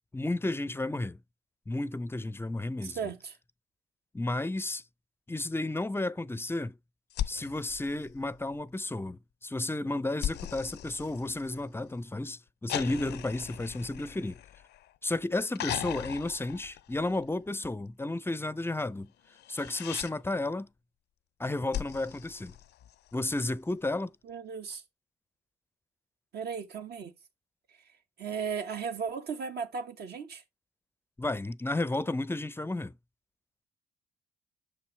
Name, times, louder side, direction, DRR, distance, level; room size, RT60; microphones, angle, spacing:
voice 1, 0.1-1.2 1.7-3.0 4.1-4.8 5.3-6.8 7.3-14.4 15.0-19.1 19.5-20.7 21.4-22.5 23.1-24.1 31.2-32.9, left 2 dB, 10° left, 0.5 m, -32 dB
voice 2, 2.8-3.4 24.2-24.8 26.3-27.1 28.2-30.4, right 6 dB, 65° right, 1.3 m, -36 dB
sound 1, 7.1-8.7 10.2-11.9 12.7-15.0 15.5-17.4 19.3-20.1 21.7-23.2 24.7-24.8, left 12 dB, 70° left, 0.5 m, -39 dB
6.6 x 5.5 x 3.2 m
supercardioid pair, 60°, 18 cm